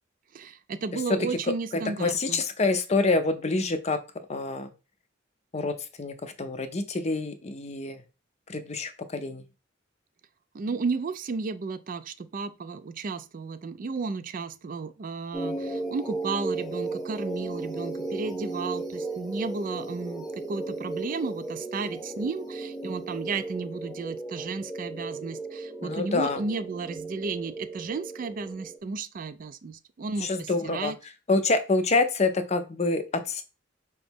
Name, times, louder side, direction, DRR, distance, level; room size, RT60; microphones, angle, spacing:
voice 1, 0.3-2.4 10.5-31.0, right 4 dB, 45° right, 0.4 m, -33 dB
voice 2, 2.0-4.0 4.3-4.7 5.5-8.0 8.5-9.4 25.8-26.4 30.2-30.9 31.3-33.4, left 3 dB, 35° left, 0.5 m, -26 dB
sound 1, 15.3-28.8, right 2 dB, ahead, 0.8 m, -35 dB
5.0 x 3.0 x 3.4 m
head